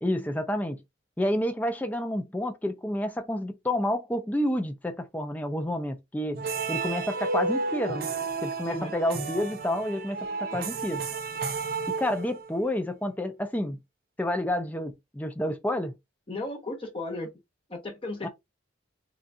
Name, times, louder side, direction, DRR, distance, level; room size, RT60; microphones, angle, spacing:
voice 1, 0.0-0.8 1.2-6.4 6.7-8.1 8.4-11.0 11.9-13.8 14.2-15.9 18.2-18.3, left 1 dB, 10° left, 0.4 m, -29 dB
sound 1, 6.3-12.6, right 4 dB, 50° right, 0.5 m, -32 dB
voice 2, 8.6-8.9 16.3-17.3 17.7-18.3, left 2 dB, 25° left, 0.8 m, -35 dB
3.8 x 2.3 x 2.6 m
head